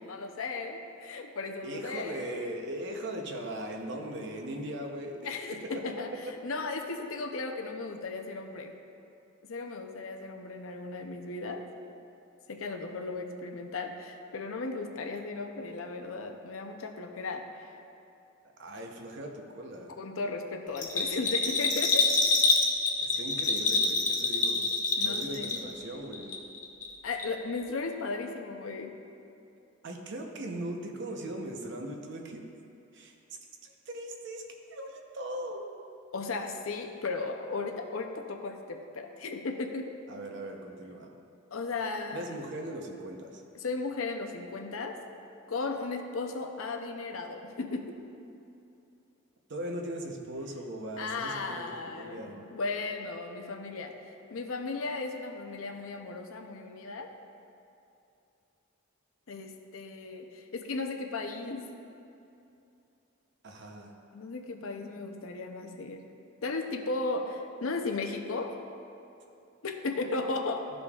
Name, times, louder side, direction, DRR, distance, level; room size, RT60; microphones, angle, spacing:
voice 1, 0.0-2.5 5.2-8.7 9.5-11.6 12.5-17.7 20.0-22.1 25.0-25.7 27.0-29.0 36.1-39.9 41.5-42.3 43.6-45.0 45.5-48.0 51.0-53.9 54.3-57.1 59.3-61.7 64.1-66.0 66.4-68.6 69.6-70.7, left 3 dB, 75° left, 4 dB, 0.6 m, -36 dB
voice 2, 1.6-5.3 5.6-5.8 6.2-6.3 18.6-19.9 23.0-24.7 25.0-26.4 29.8-32.5 32.9-33.2 33.6-34.4 34.7-35.7 40.1-41.1 42.1-43.4 49.5-52.5 63.4-63.9, right 1 dB, 60° right, 2 dB, 0.8 m, -39 dB
Bell, 20.7-25.8 26.1-26.9 27.2-27.3, left 3 dB, 35° left, 0.7 m, -26 dB
13.0 x 5.1 x 2.4 m, 2.7 s
head